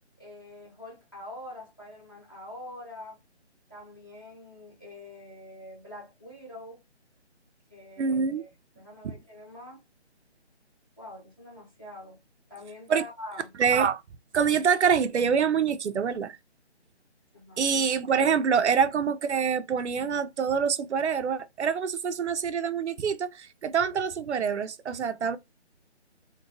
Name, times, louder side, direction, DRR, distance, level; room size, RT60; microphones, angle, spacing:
voice 1, 0.2-3.2 3.7-6.8 7.7-8.5 8.8-9.8 11.0-12.2 12.5-13.5 17.3-17.7, left 1 dB, 20° left, 0.7 m, -45 dB
voice 2, 8.0-8.4 9.0-9.1 12.9-13.0 13.6-14.0 14.3-16.4 17.6-25.4, right 6 dB, 75° right, 0.5 m, -25 dB
3.7 x 2.2 x 2.6 m
hypercardioid pair, 175°, 34 cm